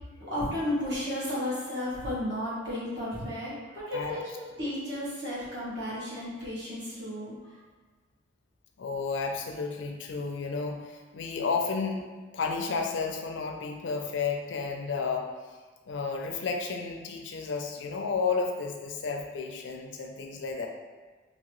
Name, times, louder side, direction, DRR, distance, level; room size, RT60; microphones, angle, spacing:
voice 1, 0.2-7.6, left 1 dB, 65° right, -8 dB, 1.2 m, -33 dB
voice 2, 8.8-12.1 12.3-15.3 15.9-20.7, left 4 dB, 80° left, 3 dB, 0.4 m, -32 dB
2.8 x 2.7 x 3.0 m, 1.3 s
head